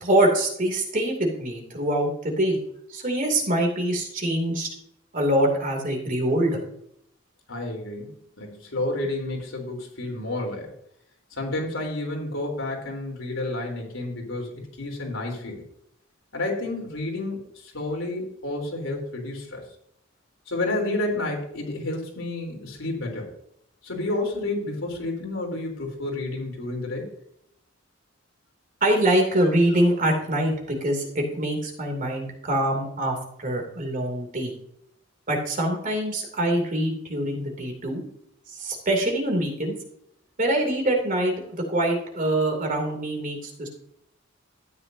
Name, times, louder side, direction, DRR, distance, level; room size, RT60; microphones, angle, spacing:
voice 1, 0.0-2.6 2.9-4.7 5.1-6.6 28.8-34.5 35.3-38.0 38.5-39.8 40.4-43.7, right 1 dB, 40° right, 2 dB, 2.7 m, -24 dB
voice 2, 7.5-10.7 11.3-15.6 16.3-19.6 20.5-23.3 23.8-27.1, left 2 dB, 75° left, 1 dB, 3.5 m, -30 dB
13.0 x 9.5 x 2.7 m, 0.72 s
head